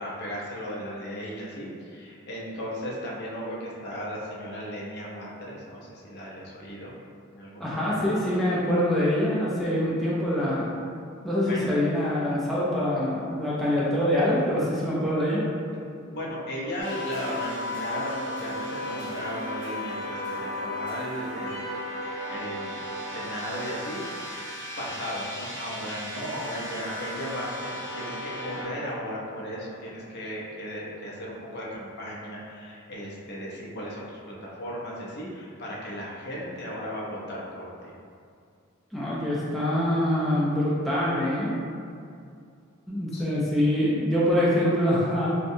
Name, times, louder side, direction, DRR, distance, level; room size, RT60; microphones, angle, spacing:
voice 1, 0.0-6.9 7.3-8.0 11.4-11.7 15.9-21.7 22.3-24.4 24.8-37.9 43.1-43.2, equal, 55° left, -5 dB, 0.5 m, -36 dB
voice 2, 7.6-10.7 11.2-15.4 38.9-41.5 42.9-45.3, left 1 dB, ahead, -9 dB, 0.3 m, -24 dB
sound 1, 16.8-28.6, left 1 dB, 60° right, 1.4 m, -35 dB
2.6 x 2.1 x 2.6 m, 2.4 s
head